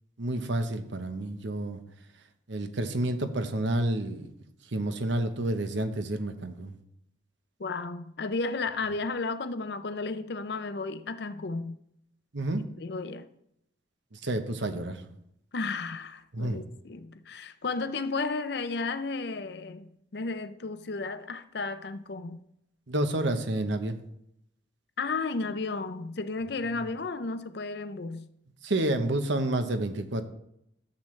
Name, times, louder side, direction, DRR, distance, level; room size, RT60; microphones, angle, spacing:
voice 1, 0.2-1.8 2.5-4.3 4.7-6.7 12.3-12.6 14.1-15.0 16.3-16.6 22.9-24.0 28.6-30.2, right 1 dB, 80° right, 1.0 m, -29 dB
voice 2, 7.6-11.8 12.8-13.3 15.5-22.4 25.0-28.3, left 3 dB, 60° left, 0.6 m, -33 dB
12.5 x 7.7 x 3.2 m
head